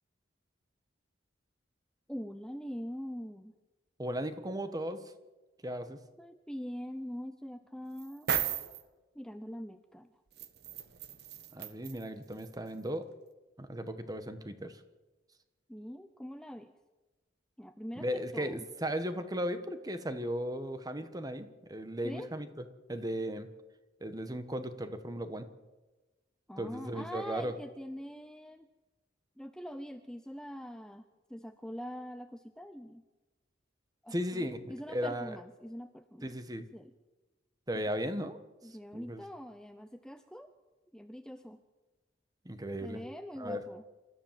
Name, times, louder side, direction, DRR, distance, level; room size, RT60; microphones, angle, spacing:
voice 1, 2.1-3.6 6.2-8.3 9.1-10.2 15.7-16.7 17.6-18.1 18.3-18.7 22.0-22.3 26.5-28.7 29.4-33.0 34.0-36.3 36.6-36.9 37.9-38.0 38.6-40.5 40.9-41.6 42.8-43.8, equal, 5° left, 8 dB, 0.6 m, -43 dB
voice 2, 4.0-5.0 5.6-6.0 11.5-13.0 13.6-14.8 18.0-22.5 22.9-23.5 24.0-25.5 26.6-27.5 34.1-35.3 36.2-36.7 37.7-38.4 38.9-39.2 42.4-43.0 43.4-43.6, equal, 20° right, 10 dB, 1.4 m, -36 dB
sound 1, 8.0-8.8 10.4-12.0 12.4-12.5, right 8 dB, 55° right, 1.3 m, -35 dB
27.0 x 13.5 x 7.5 m, 1.2 s
head